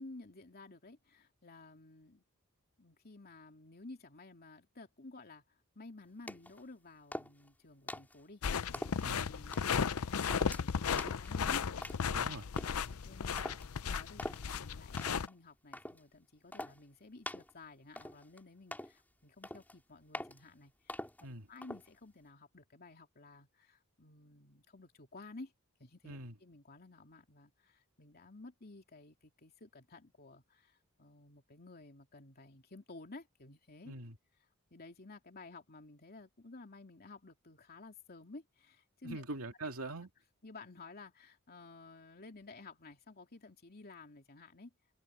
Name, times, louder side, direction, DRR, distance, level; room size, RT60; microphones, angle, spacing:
voice 1, 0.0-2.2 2.8-5.4 5.7-11.6 12.7-21.0 21.5-25.5 25.8-33.9 34.7-39.2 40.4-44.7, left 3 dB, 45° left, 2.9 m, -54 dB
sound 1, 6.3-6.6 7.1-7.5 7.9-8.2 8.7-9.1 9.5-9.8 10.3-10.6 11.0-11.3 11.8-12.2 12.6-12.8 13.4-13.7 14.2-14.4 15.0-15.3 15.7-16.0 16.5-16.8 17.3-17.5 18.0-18.4 18.7-19.0 19.4-19.7 20.1-20.4 20.9-21.2 21.6-21.9, left 1 dB, 10° left, 4.4 m, -44 dB
sound 2, 8.4-15.3, left 6 dB, 75° left, 0.6 m, -35 dB
voice 2, 12.1-12.4 21.2-21.5 26.0-26.3 33.8-34.2 39.0-40.1, right 2 dB, 70° right, 2.6 m, -43 dB
head